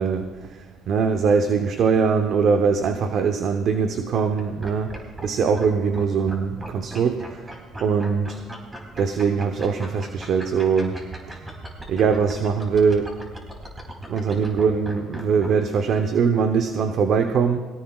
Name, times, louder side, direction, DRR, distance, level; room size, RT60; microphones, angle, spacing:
voice 1, 0.0-4.9 5.2-7.5 7.8-8.4 9.0-11.0 11.3-11.4 11.9-13.1 14.1-17.6, right 5 dB, 60° right, 6 dB, 0.9 m, -22 dB
sound 1, 4.4-5.3 5.5-5.7 5.9-15.5, right 1 dB, 20° right, 4.3 m, -37 dB
21.0 x 17.5 x 2.4 m, 1.3 s
supercardioid pair, 85°, 0 cm